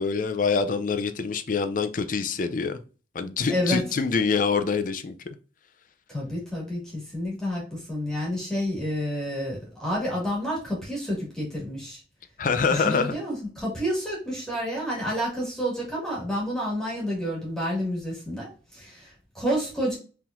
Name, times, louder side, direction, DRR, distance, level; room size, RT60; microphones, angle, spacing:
voice 1, 0.0-2.8 3.1-5.1 12.4-13.2, left 5 dB, 45° left, 0.4 m, -25 dB
voice 2, 3.5-3.8 6.1-12.0 12.7-20.0, equal, 5° left, 2.0 m, -29 dB
4.6 x 3.7 x 2.5 m
head